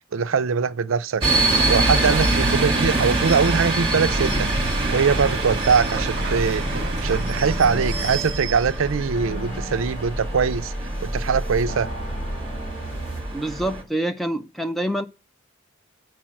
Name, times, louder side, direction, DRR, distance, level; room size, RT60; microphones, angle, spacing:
voice 1, 0.1-1.2 1.7-4.5 4.9-10.7 11.0-11.9, right 5 dB, 75° right, 0.5 m, -22 dB
sound 1, 1.2-13.8, right 2 dB, 25° right, 1.7 m, -25 dB
sound 2, 2.3-8.6, right 2 dB, 45° right, 0.7 m, -33 dB
sound 3, 4.0-13.2, equal, 40° left, 2.5 m, -31 dB
voice 2, 13.3-15.1, right 1 dB, ahead, 0.4 m, -26 dB
7.6 x 4.7 x 5.8 m
head